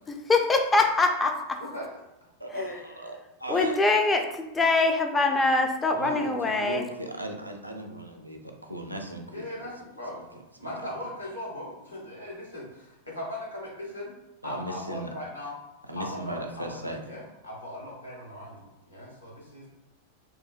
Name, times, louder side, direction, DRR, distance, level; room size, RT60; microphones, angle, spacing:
voice 1, 0.1-1.6 3.5-6.8, left 3 dB, 15° left, 4 dB, 0.3 m, -23 dB
voice 2, 2.4-3.8 6.0-9.7 10.1-10.9 14.4-15.1 15.4-15.5 15.9-17.1, right 1 dB, 85° right, 2 dB, 0.4 m, -37 dB
voice 3, 9.3-10.2 10.6-14.1 14.4-15.5 16.0-18.6 18.9-19.7, left 1 dB, 85° left, -5 dB, 1.0 m, -39 dB
2.6 x 2.3 x 3.0 m, 0.90 s
figure-of-eight pair, 90°, 0 cm